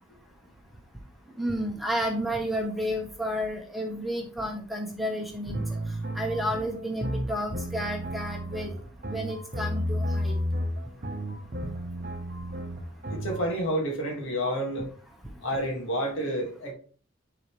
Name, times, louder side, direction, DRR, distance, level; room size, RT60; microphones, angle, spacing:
voice 1, 1.4-5.6 6.1-8.7 9.1-10.3, equal, ahead, 0 dB, 1.1 m, -31 dB
sound 1, 5.5-13.4, equal, 40° right, 0.9 m, -32 dB
voice 2, 13.1-14.9 15.4-16.7, equal, 65° left, 1 dB, 2.0 m, -29 dB
10.5 x 3.9 x 3.2 m, 0.42 s
head